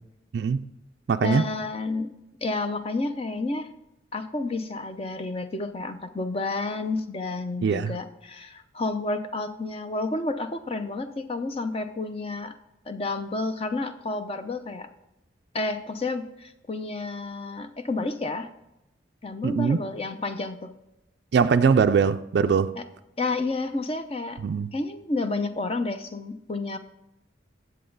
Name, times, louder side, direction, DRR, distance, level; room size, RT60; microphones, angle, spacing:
voice 1, 0.3-0.7 1.1-1.4 7.6-8.0 19.4-19.8 21.3-22.7 24.4-24.7, right 6 dB, 55° right, 0.3 m, -21 dB
voice 2, 1.2-2.1 2.4-3.7 4.1-12.6 12.9-14.9 15.5-18.5 19.2-20.8 22.8-22.9 23.2-24.4 24.7-26.8, left 2 dB, 30° left, 0.6 m, -30 dB
9.9 x 7.7 x 3.9 m
head